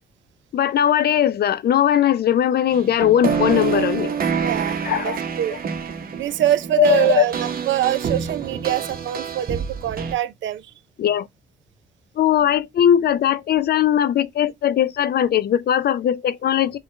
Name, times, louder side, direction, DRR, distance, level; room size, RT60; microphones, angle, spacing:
voice 1, 0.5-4.1 4.9-5.2 6.8-7.2 11.0-11.3 12.2-16.8, left 10 dB, 55° left, 0.5 m, -19 dB
sound 1, 2.7-10.1, right 6 dB, 45° right, 1.0 m, -27 dB
voice 2, 4.4-5.6 6.2-10.7, right 12 dB, 70° right, 0.6 m, -24 dB
7.0 x 2.4 x 3.1 m
cardioid pair, 90°, 20 cm